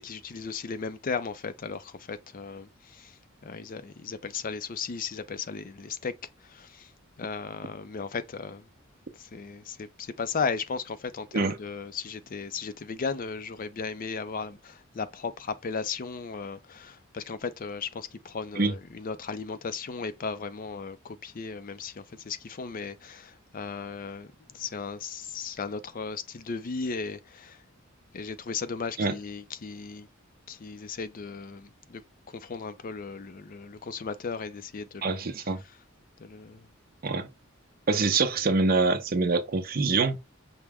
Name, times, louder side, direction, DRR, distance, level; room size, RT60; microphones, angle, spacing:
voice 1, 0.0-6.1 6.4-6.9 7.2-8.7 9.1-27.6 28.1-30.1 30.5-32.0 32.3-35.3 36.2-36.7, left 5 dB, 45° left, 0.5 m, -36 dB
voice 2, 35.0-35.6 37.0-37.3 37.9-40.2, right 3 dB, 45° right, 0.6 m, -25 dB
5.9 x 2.1 x 3.5 m
head